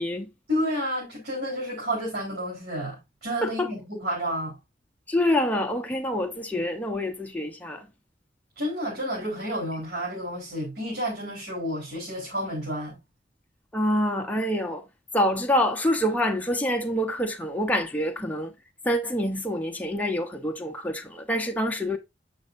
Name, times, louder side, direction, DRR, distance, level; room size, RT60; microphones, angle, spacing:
voice 1, 0.5-4.6 8.6-13.0, equal, 60° right, 4.0 m, -30 dB
voice 2, 5.1-7.9 13.7-14.8 15.1-18.5 18.8-22.0, left 1 dB, 10° left, 0.8 m, -26 dB
8.4 x 6.3 x 2.6 m
head